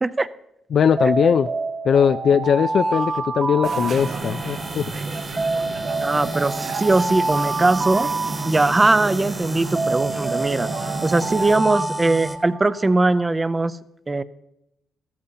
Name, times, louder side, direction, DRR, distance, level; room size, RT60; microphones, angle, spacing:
voice 1, 0.7-1.5 1.9-4.9, left 7 dB, 60° left, 10 dB, 0.3 m, -19 dB
Alarm, 1.0-4.7 5.4-9.1 9.7-13.0, right 3 dB, 40° right, 1.4 m, -27 dB
sound 1, 3.6-11.6, right 5 dB, 60° right, 0.9 m, -34 dB
sound 2, 3.9-12.4, right 1 dB, 5° right, 1.2 m, -33 dB
voice 2, 6.0-8.1 8.5-10.7 11.0-13.8 14.1-14.2, right 2 dB, 25° right, 15 dB, 0.6 m, -20 dB
14.0 x 13.5 x 2.8 m, 0.81 s
supercardioid pair, 70°, 0 cm